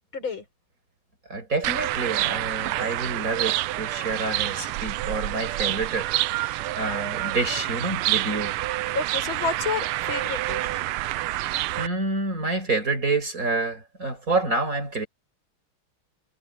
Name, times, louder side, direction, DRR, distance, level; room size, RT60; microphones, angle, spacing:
voice 1, 0.1-0.4 8.9-10.8, left 4 dB, 70° left, 6.1 m, -30 dB
voice 2, 1.3-8.5 11.3-15.1, right 3 dB, 40° right, 5.7 m, -28 dB
sound 1, 1.6-11.9, right 17 dB, 85° right, 1.5 m, -28 dB
omnidirectional pair, 2.3 m